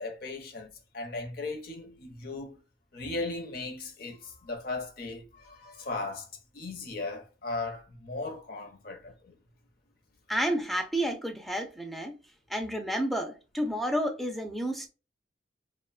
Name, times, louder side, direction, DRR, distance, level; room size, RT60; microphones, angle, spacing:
voice 1, 0.0-2.6 2.9-6.3 6.5-9.3, left 3 dB, 50° left, 0.6 m, -37 dB
voice 2, 10.3-12.1 12.5-14.9, equal, ahead, 0.3 m, -30 dB
2.9 x 2.1 x 2.2 m
head